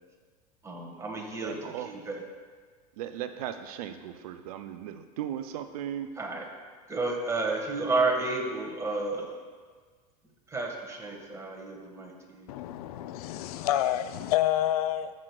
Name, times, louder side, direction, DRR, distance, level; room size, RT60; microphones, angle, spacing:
voice 1, 0.6-2.2 6.1-6.5 6.9-9.3 10.5-12.5, right 3 dB, 15° right, 1 dB, 1.5 m, -31 dB
voice 2, 1.3-1.9 3.0-6.1, right 10 dB, 65° right, 9 dB, 0.5 m, -37 dB
voice 3, 12.5-15.1, left 12 dB, 70° left, 12 dB, 0.4 m, -28 dB
13.0 x 6.1 x 2.3 m, 1.5 s
hypercardioid pair, 90°, 20 cm